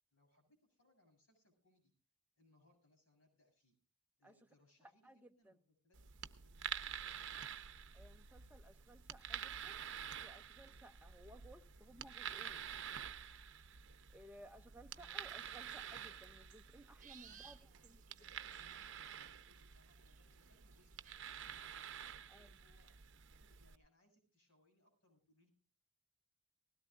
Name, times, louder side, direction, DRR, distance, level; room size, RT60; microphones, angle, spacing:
voice 1, 0.1-1.9 2.4-3.7 4.2-7.6 14.9-15.2 17.3-21.8 22.3-25.5, left 1 dB, 65° left, 2 dB, 7.9 m, -73 dB
voice 2, 5.0-5.6 7.9-9.8 10.2-12.7 14.1-17.6 17.8-18.0 22.3-22.5, right 1 dB, 5° right, 7 dB, 0.6 m, -59 dB
sound 1, 5.9-23.8, right 9 dB, 55° right, 0.8 m, -49 dB
sound 2, 15.4-15.8 16.2-19.3 19.6-21.2, right 9 dB, 35° right, 1.2 m, -62 dB
20.0 x 17.0 x 2.5 m, 0.35 s
head